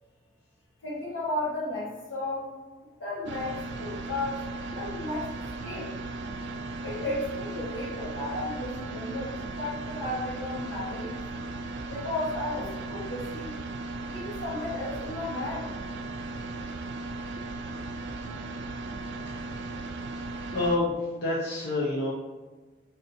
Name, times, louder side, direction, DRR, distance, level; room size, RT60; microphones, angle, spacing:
voice 1, 0.8-2.5 3.0-4.5 4.7-5.3 5.6-5.9 6.4-6.5 6.8-11.2 11.9-13.5 14.0-15.7, left 2 dB, 70° left, -5 dB, 1.2 m, -34 dB
sound 1, 3.3-20.8, right 2 dB, 60° right, 0.3 m, -37 dB
voice 2, 20.5-22.1, left 2 dB, 55° left, -6 dB, 0.7 m, -27 dB
5.2 x 2.7 x 2.6 m, 1.3 s
head